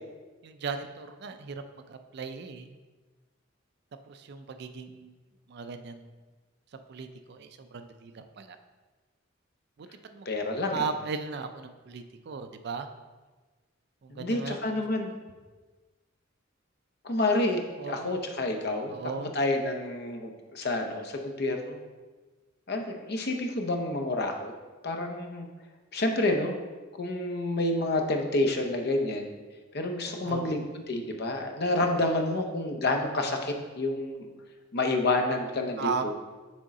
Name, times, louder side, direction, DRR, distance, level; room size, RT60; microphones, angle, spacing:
voice 1, 0.4-2.8 4.1-5.1 5.5-6.1 6.7-8.6 9.8-10.3 10.7-12.9 14.0-14.7 17.8-18.2 18.9-19.3 30.0-30.5 31.7-32.0 32.3-32.5 35.8-36.1, right 5 dB, 55° right, 8 dB, 0.4 m, -37 dB
voice 2, 10.3-10.9 14.1-15.1 17.0-17.6 17.9-18.9 19.2-21.8 22.7-24.5 24.8-25.5 25.9-26.6 27.0-29.3 29.7-30.6 30.9-34.3 34.7-36.1, left 2 dB, 55° left, 4 dB, 0.7 m, -29 dB
6.3 x 3.7 x 4.1 m, 1.3 s
head